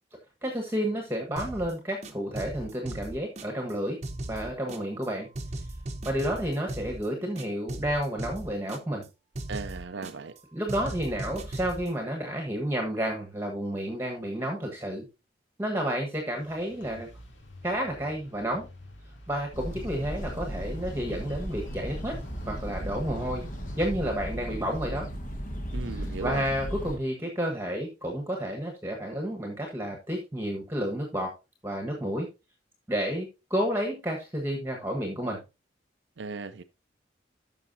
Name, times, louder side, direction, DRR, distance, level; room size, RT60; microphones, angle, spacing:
voice 1, 0.4-4.0 4.3-5.3 6.0-9.0 10.5-15.0 15.6-17.1 17.6-18.7 19.3-22.2 22.5-23.4 23.8-25.1 26.0-31.3 31.6-32.3 32.9-35.4, equal, 10° right, 1.4 m, -31 dB
sound 1, 1.4-1.7 2.0-3.7 4.0-5.1 5.3-7.1 7.4-9.1 9.3-10.4 10.7-11.9, right 1 dB, 35° right, 0.9 m, -38 dB
voice 2, 9.5-10.3 25.7-26.4 36.2-36.6, right 4 dB, 70° right, 0.5 m, -36 dB
sound 2, 16.4-23.9, left 1 dB, 85° left, 3.3 m, -48 dB
sound 3, 19.5-27.0, equal, 40° left, 1.5 m, -36 dB
13.0 x 5.7 x 2.7 m
head